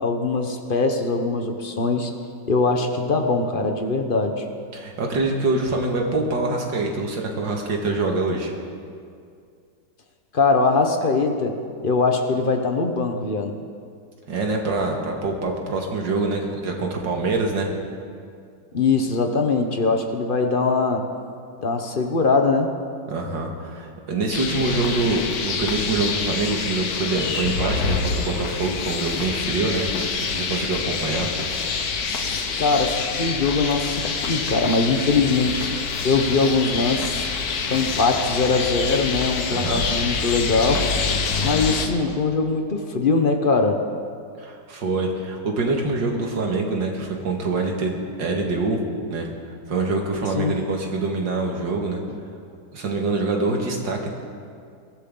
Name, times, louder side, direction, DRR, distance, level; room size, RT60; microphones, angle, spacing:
voice 1, 0.0-2.1 2.5-4.5 10.3-11.6 11.8-13.6 18.7-21.0 21.6-22.7 32.1-35.6 36.0-37.3 37.7-40.9 41.4-43.8 50.4-50.6, left 4 dB, 40° left, 5 dB, 0.8 m, -22 dB
voice 2, 4.7-8.5 14.3-17.7 23.1-29.8 30.1-31.3 39.5-39.8 44.4-48.8 49.1-49.3 49.7-52.0 52.7-54.1, right 3 dB, 75° right, 1 dB, 2.4 m, -25 dB
sound 1, 24.3-41.9, left 5 dB, 60° left, 1.4 m, -26 dB
22.0 x 14.5 x 3.8 m, 2.3 s
omnidirectional pair, 2.0 m